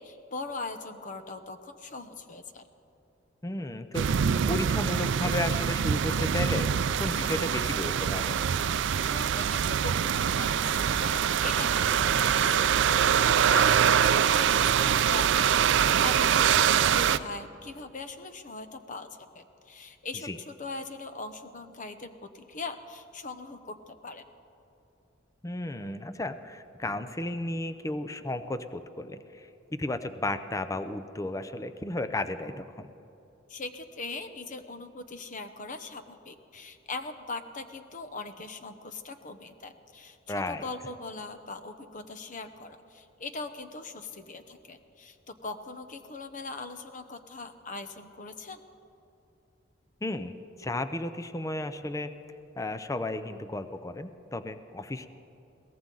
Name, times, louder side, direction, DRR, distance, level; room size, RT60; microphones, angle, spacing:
voice 1, 0.0-2.7 9.0-24.2 33.5-48.6, left 3 dB, 40° left, 9 dB, 0.8 m, -40 dB
voice 2, 3.4-4.1 4.5-6.7 7.0-8.4 20.2-20.4 25.4-29.5 29.8-32.9 40.3-40.7 50.0-50.3 50.6-52.1 52.6-55.1, left 1 dB, 15° left, 10 dB, 0.5 m, -33 dB
sound 1, 3.9-17.2, right 8 dB, 65° right, 0.4 m, -24 dB
22.0 x 17.0 x 3.9 m, 2.8 s
head